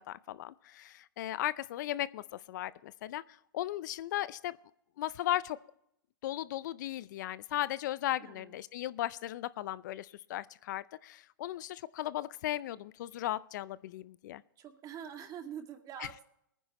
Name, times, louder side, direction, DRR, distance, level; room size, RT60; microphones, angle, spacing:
voice 1, 0.0-4.6 5.0-5.6 6.2-14.4, left 14 dB, 60° left, 19 dB, 0.5 m, -36 dB
voice 2, 14.6-16.2, right 8 dB, 30° right, 5 dB, 2.1 m, -45 dB
22.0 x 10.0 x 3.0 m, 0.76 s
hypercardioid pair, 115°, 11 cm